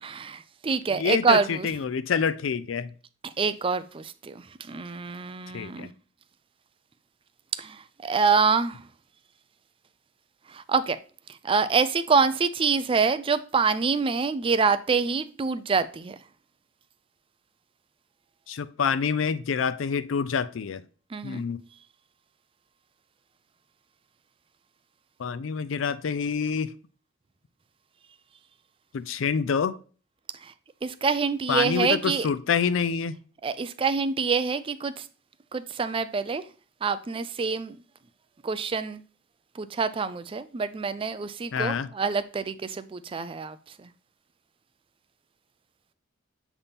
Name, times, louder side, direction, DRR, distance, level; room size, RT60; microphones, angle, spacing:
voice 1, 0.0-1.7 3.2-5.9 7.5-8.8 10.5-11.0 11.4-16.2 21.1-21.4 30.4-30.5 30.8-32.3 33.4-35.1 35.5-36.4 36.8-37.8 38.4-39.0 39.6-43.9, right 5 dB, 25° right, 0.4 m, -26 dB
voice 2, 0.9-2.9 5.5-5.9 18.5-20.8 21.2-21.6 25.2-26.7 28.9-29.8 31.5-33.2 41.5-41.9, left 6 dB, 80° left, 0.4 m, -27 dB
7.1 x 3.5 x 4.1 m
head